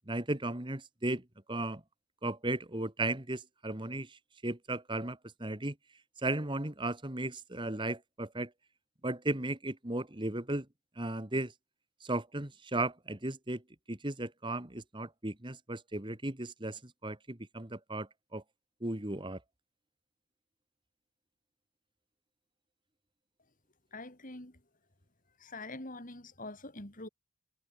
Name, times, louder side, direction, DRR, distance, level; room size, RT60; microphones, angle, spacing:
voice 1, 0.1-1.8 2.2-5.8 6.2-8.5 9.0-10.7 11.0-11.5 12.0-13.6 13.9-18.4 18.8-19.4, right 2 dB, 20° right, 1.7 m, -36 dB
voice 2, 23.9-24.6 25.4-27.1, left 2 dB, 35° left, 3.7 m, -44 dB
head